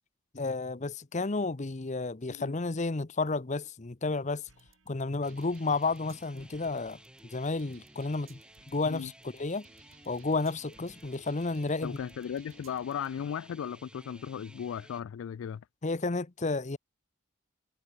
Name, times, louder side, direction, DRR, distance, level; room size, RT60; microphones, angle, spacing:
voice 1, 0.3-4.4 4.9-7.0 7.3-8.4 8.7-9.7 10.1-12.0 15.8-16.8, left 3 dB, 35° left, 0.8 m, -31 dB
sound 1, 4.5-13.1, right 5 dB, 80° right, 2.7 m, -61 dB
sound 2, 5.2-15.0, right 1 dB, 5° right, 1.8 m, -55 dB
voice 2, 11.8-15.6, left 8 dB, 80° left, 0.3 m, -36 dB
head